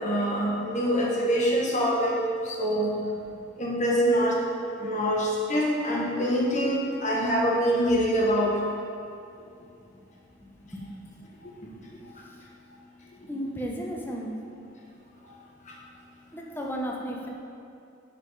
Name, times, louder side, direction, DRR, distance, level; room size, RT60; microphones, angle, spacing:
voice 1, 0.0-3.0 3.6-4.4 4.8-8.6 11.4-11.5 11.9-12.0 13.3-13.4 15.2-15.3 15.6-15.7, equal, 40° left, -3 dB, 1.5 m, -25 dB
voice 2, 10.4-10.8 12.3-12.4 13.3-14.4 16.3-17.3, equal, 10° left, -1 dB, 0.9 m, -34 dB
7.9 x 5.9 x 4.8 m, 2.6 s
head